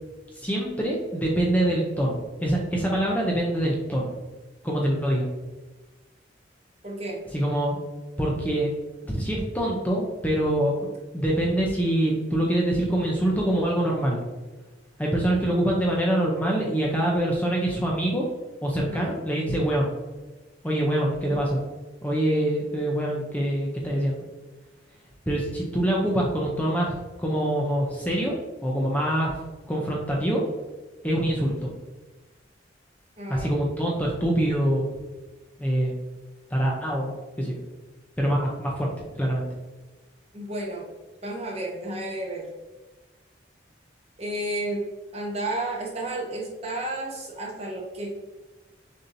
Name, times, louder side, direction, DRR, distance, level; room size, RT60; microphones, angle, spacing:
voice 1, 0.4-4.1 4.6-5.3 7.3-7.8 8.2-8.7 9.1-10.7 11.1-14.2 15.0-18.2 18.6-19.9 20.6-21.6 22.0-24.2 25.3-28.3 28.6-29.4 29.7-30.4 31.0-31.7 33.3-34.9 35.6-36.0 36.5-37.1 37.4-37.5 38.2-38.9 39.2-39.5, right 1 dB, 10° left, -3 dB, 0.6 m, -25 dB
voice 2, 6.8-7.2 18.9-19.1 21.3-21.4 33.2-33.5 40.3-40.9 41.2-42.5 44.2-44.8 45.1-48.2, right 1 dB, 35° right, -1 dB, 0.9 m, -32 dB
6.6 x 2.8 x 2.7 m, 1.2 s
head